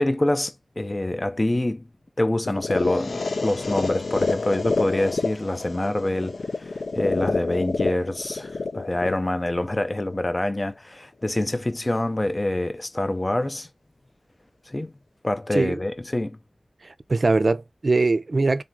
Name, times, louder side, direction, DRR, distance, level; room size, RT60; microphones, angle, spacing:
voice 1, 0.0-1.9 2.2-13.7 14.7-14.9 15.2-16.4, left 1 dB, 25° left, 0.6 m, -26 dB
sound 1, 2.4-10.4, left 3 dB, 85° left, 0.6 m, -28 dB
voice 2, 16.8-18.6, right 3 dB, 55° right, 0.5 m, -22 dB
4.0 x 2.5 x 4.4 m
wide cardioid pair, 85°, 0 cm